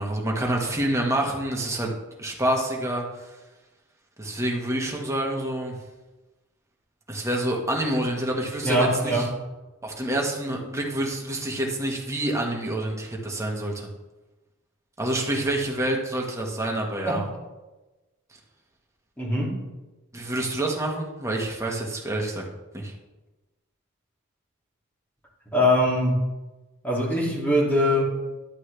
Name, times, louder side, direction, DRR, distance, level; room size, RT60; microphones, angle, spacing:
voice 1, 0.0-1.9 2.2-3.0 4.2-5.7 7.1-9.3 9.8-13.9 15.0-17.2 20.1-22.4 22.7-22.9, right 1 dB, 15° right, -1 dB, 1.5 m, -27 dB
voice 2, 8.6-9.3 17.1-17.2 19.2-19.6 25.5-26.2 26.8-28.0, left 1 dB, 10° left, -4 dB, 2.5 m, -22 dB
12.0 x 7.6 x 3.3 m, 1.1 s
head